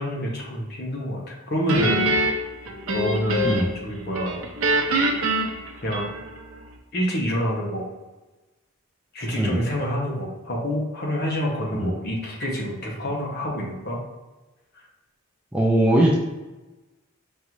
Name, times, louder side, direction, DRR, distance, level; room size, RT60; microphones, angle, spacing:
voice 1, 0.0-2.1 2.9-3.5 3.8-4.4 5.8-6.1 6.9-7.9 9.1-14.0, equal, 45° left, -2 dB, 0.9 m, -27 dB
Guitar, 1.7-3.8 4.1-6.5, right 1 dB, 65° right, 0.6 m, -24 dB
voice 2, 15.5-16.2, right 1 dB, 5° right, -3 dB, 0.4 m, -20 dB
5.2 x 2.5 x 3.0 m, 1.1 s
head